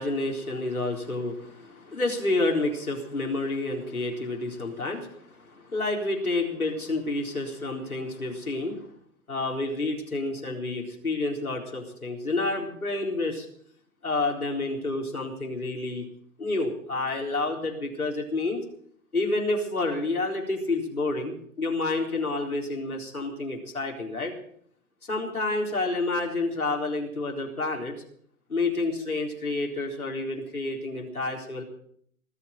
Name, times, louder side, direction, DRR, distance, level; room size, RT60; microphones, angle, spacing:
voice 1, 0.0-8.9 9.3-13.5 14.0-16.0 16.4-18.6 19.1-24.3 25.1-27.9 28.5-31.6, left 2 dB, 85° left, 1 dB, 4.2 m, -29 dB
20.0 x 7.6 x 9.2 m, 0.64 s
figure-of-eight pair, 120°, 42 cm